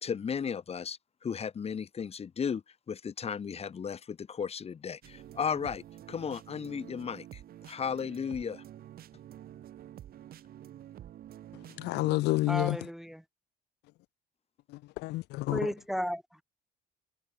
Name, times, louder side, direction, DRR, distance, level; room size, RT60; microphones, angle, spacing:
voice 1, 0.0-7.4 7.7-8.6, left 7 dB, 35° left, 2.8 m, -35 dB
sound 1, 5.0-12.2, right 11 dB, 60° right, 6.6 m, -49 dB
voice 2, 11.8-12.8 14.7-15.7, left 19 dB, 85° left, 1.2 m, -29 dB
voice 3, 12.5-13.2 15.5-16.4, equal, ahead, 1.4 m, -34 dB
cardioid pair, 110°, 17 cm